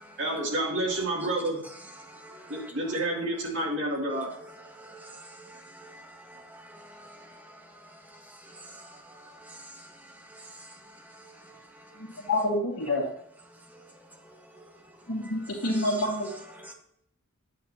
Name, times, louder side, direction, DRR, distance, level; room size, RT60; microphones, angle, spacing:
voice 1, 0.2-1.6 2.5-4.3, right 1 dB, 60° right, 2.7 m, -29 dB
voice 2, 2.0-2.7 4.1-8.0 8.4-9.9 10.3-10.7 11.1-12.1 13.7-13.9 14.3-14.6 15.2-16.1 16.5-16.7, right 1 dB, 10° right, 1.3 m, -48 dB
voice 3, 12.3-13.0 15.1-16.3, left 1 dB, 70° left, 1.8 m, -27 dB
9.6 x 8.5 x 2.8 m
head